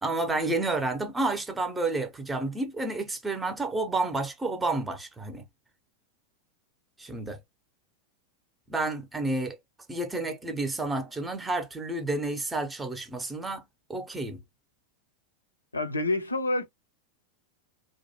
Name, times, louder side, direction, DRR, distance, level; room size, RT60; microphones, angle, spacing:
voice 1, 0.0-5.4 7.0-7.4 8.7-9.6 9.9-13.6 13.9-14.4, right 2 dB, 10° right, 0.6 m, -30 dB
voice 2, 15.7-16.7, left 2 dB, 80° left, 0.4 m, -27 dB
2.5 x 2.1 x 2.8 m
figure-of-eight pair, 90°, 0 cm